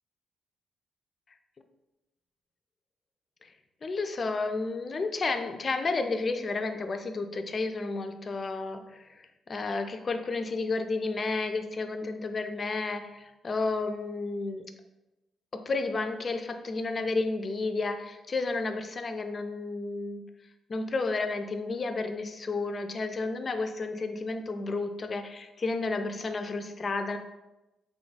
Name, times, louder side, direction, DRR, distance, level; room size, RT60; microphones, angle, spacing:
voice 1, 3.8-14.7 15.5-20.2 20.7-27.2, left 3 dB, 40° left, 7 dB, 0.4 m, -32 dB
3.4 x 2.3 x 3.9 m, 0.99 s
cardioid pair, 90°, 0 cm